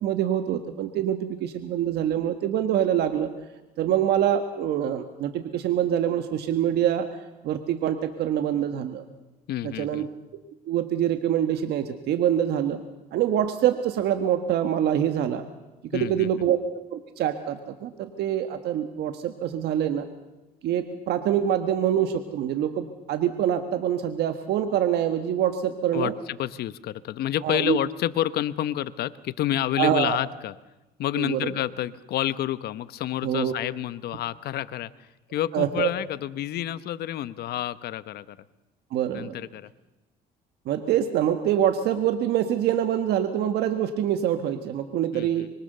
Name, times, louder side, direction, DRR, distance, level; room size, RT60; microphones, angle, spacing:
voice 1, 0.0-3.3 3.8-7.1 7.4-9.0 9.6-10.1 10.7-12.8 13.1-15.4 15.9-16.6 16.9-20.0 20.6-26.1 27.4-27.8 29.8-30.2 31.2-31.5 33.2-33.5 35.5-35.9 38.9-39.3 40.6-45.5, right 10 dB, 75° right, 8 dB, 1.6 m, -25 dB
voice 2, 9.5-10.1 15.9-16.3 25.9-30.5 31.0-38.4 39.1-39.7 45.1-45.5, left 12 dB, 70° left, 15 dB, 1.1 m, -29 dB
25.0 x 23.5 x 6.8 m, 1.0 s
cardioid pair, 100°, 17 cm